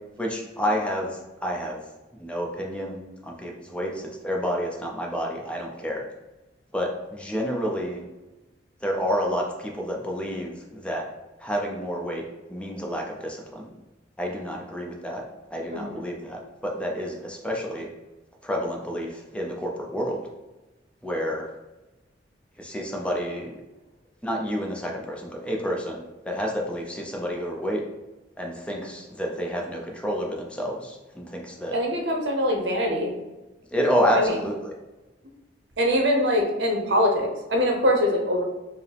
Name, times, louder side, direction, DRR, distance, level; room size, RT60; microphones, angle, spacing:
voice 1, 0.2-1.8 2.2-6.0 6.7-8.0 8.8-11.0 11.4-12.2 12.5-13.7 14.2-15.2 15.5-17.9 18.4-20.2 21.0-21.5 22.6-23.6 24.2-27.8 28.4-31.7 33.7-34.7, equal, 5° left, -1 dB, 0.5 m, -29 dB
voice 2, 15.7-16.0 31.7-33.1 34.1-34.4 35.8-38.4, equal, 70° right, 1 dB, 0.7 m, -23 dB
4.8 x 2.0 x 3.3 m, 1.1 s
head